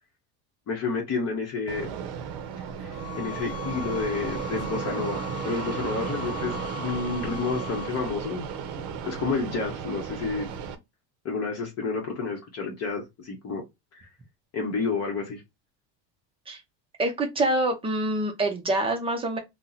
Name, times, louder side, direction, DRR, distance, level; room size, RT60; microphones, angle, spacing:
voice 1, 0.7-1.9 2.8-8.5 9.0-10.5 11.2-13.6 13.9-14.1 14.5-15.4, left 4 dB, 35° left, 0.8 m, -30 dB
Fixed-wing aircraft airplane, 1.7-10.7, right 7 dB, 55° right, 0.7 m, -34 dB
sound 1, 2.9-7.9, left 19 dB, 80° left, 0.7 m, -40 dB
voice 2, 17.0-19.4, right 1 dB, 15° right, 0.5 m, -26 dB
2.8 x 2.1 x 3.8 m
cardioid pair, 140°, 43 cm